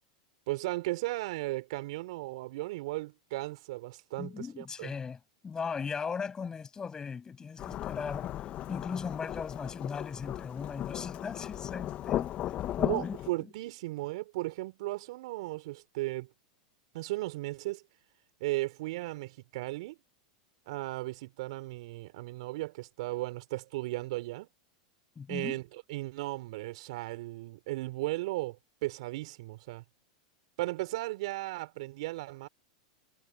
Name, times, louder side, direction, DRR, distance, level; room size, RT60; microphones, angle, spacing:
voice 1, 0.5-4.9 12.8-16.3 16.9-17.8 18.4-20.0 20.7-24.5 25.3-29.8 30.6-32.5, right 19 dB, 65° right, 3.8 m, -36 dB
voice 2, 4.2-8.3 8.7-12.3 12.7-13.5 25.2-25.6, left 6 dB, 20° left, 7.1 m, -38 dB
Thunderstorm / Rain, 7.6-13.3, left 12 dB, 35° left, 1.3 m, -36 dB
hypercardioid pair, 115°, 4 cm